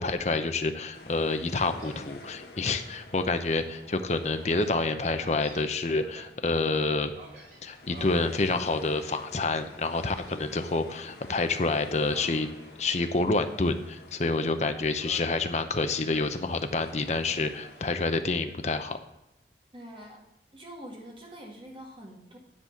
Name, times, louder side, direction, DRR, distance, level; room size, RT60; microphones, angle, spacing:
voice 1, 0.0-7.1 7.6-12.5 12.8-19.0, left 3 dB, 40° left, 8 dB, 0.7 m, -28 dB
sound 1, 0.9-17.9, left 2 dB, 65° left, 1.5 m, -50 dB
Gull seagull, 1.7-2.2 2.7-2.8 3.3-6.3 7.1-8.3 8.8-9.3 10.1-10.8 11.2-11.4 12.0-13.5 13.9-14.6 15.0-16.3 17.6-18.6, right 1 dB, 50° right, 2.6 m, -51 dB
voice 2, 19.7-20.2 20.5-22.4, equal, 30° right, -1 dB, 1.9 m, -45 dB
9.9 x 4.1 x 7.1 m, 0.89 s
head